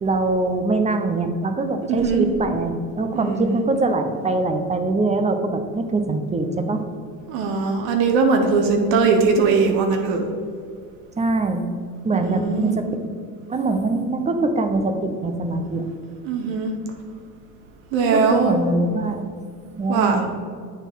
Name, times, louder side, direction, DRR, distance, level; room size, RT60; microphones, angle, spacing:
voice 1, 0.0-6.8 11.2-11.7 12.0-12.9 13.5-15.9 18.1-19.2 19.8-20.3, right 2 dB, 15° right, 7 dB, 0.6 m, -23 dB
voice 2, 1.9-2.2 3.1-3.6 7.3-10.3 12.2-12.8 16.2-16.7 17.9-18.6 19.9-20.2, right 4 dB, 65° right, 3 dB, 1.0 m, -20 dB
7.9 x 4.2 x 3.9 m, 2.2 s
supercardioid pair, 90°, 48 cm